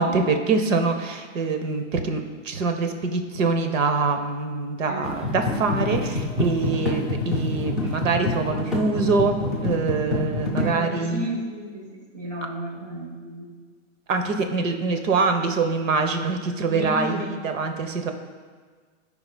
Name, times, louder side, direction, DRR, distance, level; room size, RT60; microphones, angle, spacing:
voice 1, 0.0-9.4 9.6-11.3 14.1-18.1, right 4 dB, 75° right, 6 dB, 1.0 m, -24 dB
voice 2, 4.9-5.2 10.5-13.5 16.7-17.4, equal, 35° right, -2 dB, 2.0 m, -33 dB
sound 1, 5.0-10.7, left 2 dB, ahead, 0.6 m, -27 dB
13.0 x 4.8 x 2.3 m, 1.5 s
hypercardioid pair, 150°, 39 cm